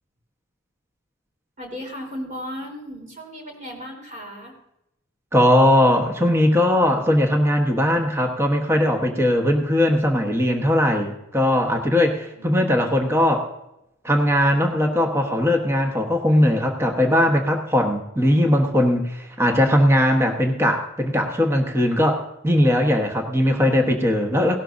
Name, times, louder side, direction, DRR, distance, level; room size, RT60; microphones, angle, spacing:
voice 1, 1.6-4.5, equal, 35° right, 2 dB, 3.6 m, -36 dB
voice 2, 5.3-13.5 14.0-24.6, left 1 dB, 10° right, 3 dB, 1.1 m, -19 dB
17.5 x 12.5 x 2.6 m, 0.84 s
head